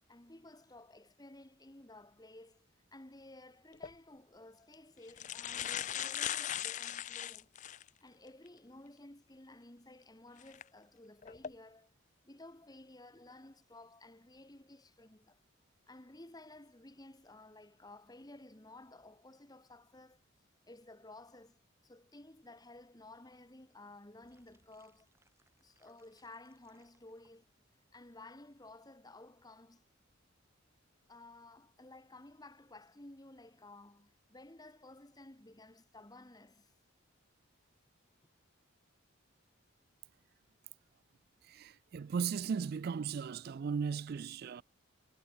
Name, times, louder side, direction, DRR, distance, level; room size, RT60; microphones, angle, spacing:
voice 1, 0.1-7.5 8.0-11.9 12.2-15.4 15.9-20.2 20.7-25.1 25.6-27.5 27.9-29.8 31.1-36.7, left 2 dB, 20° left, 1.4 m, -55 dB
sound 1, 3.7-3.9 4.7-4.8 5.1-7.9 8.5-8.6 10.4-10.6 11.2-11.5, left 11 dB, 35° left, 0.4 m, -38 dB
sound 2, 24.1-28.7 28.9-29.0 29.3-29.5 29.8-29.9, right 2 dB, 10° right, 5.8 m, -75 dB
voice 2, 41.4-44.6, right 6 dB, 45° right, 0.3 m, -36 dB
head